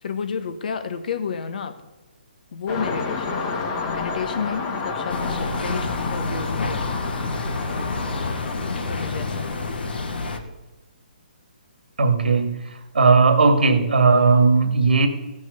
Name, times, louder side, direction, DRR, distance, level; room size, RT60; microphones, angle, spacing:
voice 1, 0.0-1.8 2.5-7.0 7.7-8.2 8.9-9.9, left 6 dB, 60° left, 9 dB, 1.4 m, -31 dB
sound 1, 2.7-10.3, left 4 dB, 30° left, 1.8 m, -31 dB
sound 2, 5.1-10.4, left 3 dB, 85° left, 1.7 m, -28 dB
voice 2, 12.0-15.1, right 4 dB, 80° right, 6 dB, 2.2 m, -17 dB
15.5 x 6.2 x 6.7 m, 1.2 s
hypercardioid pair, 155°, 5 cm